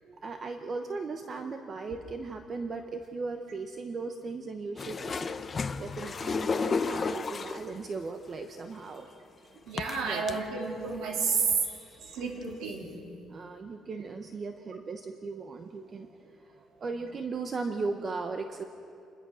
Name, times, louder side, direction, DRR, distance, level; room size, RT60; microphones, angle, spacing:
voice 1, 0.2-9.5 10.0-10.5 11.6-12.2 13.3-18.6, right 4 dB, 30° right, 6 dB, 0.9 m, -38 dB
sound 1, 4.8-7.8 8.7-8.8 9.8-10.3 10.9-11.0 11.4-11.8 12.5-12.6, left 4 dB, 25° left, 0.7 m, -32 dB
voice 2, 9.7-11.5 12.1-12.9, right 5 dB, 90° right, 1 dB, 3.7 m, -31 dB
27.5 x 21.0 x 6.3 m, 2.5 s
cardioid pair, 160°, 0 cm